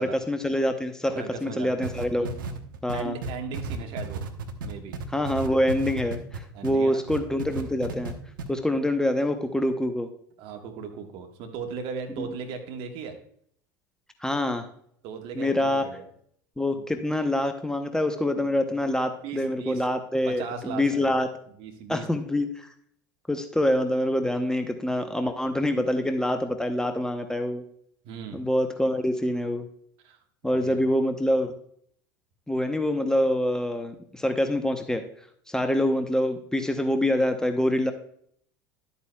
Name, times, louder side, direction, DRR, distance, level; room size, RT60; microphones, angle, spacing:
voice 1, 0.0-2.3 2.8-3.2 5.1-8.1 8.5-10.1 12.2-12.3 14.2-14.7 15.4-15.8 16.6-21.3 21.9-22.7 23.3-27.6 28.3-29.7 30.4-31.5 32.5-35.0 35.5-37.9, left 1 dB, 5° left, 7 dB, 0.8 m, -25 dB
voice 2, 1.1-1.9 2.9-4.2 4.6-4.9 6.5-7.0 10.4-13.2 15.0-16.1 16.7-16.9 18.4-18.8 19.2-19.9 20.3-21.1 21.6-22.1 28.0-28.4 30.0-30.2 30.5-30.8, right 6 dB, 55° right, 4 dB, 1.5 m, -37 dB
sound 1, 1.8-6.8 7.1-8.1 8.4-8.5, right 4 dB, 75° right, 0.9 m, -33 dB
11.5 x 8.3 x 2.3 m, 0.63 s
figure-of-eight pair, 75°, 11 cm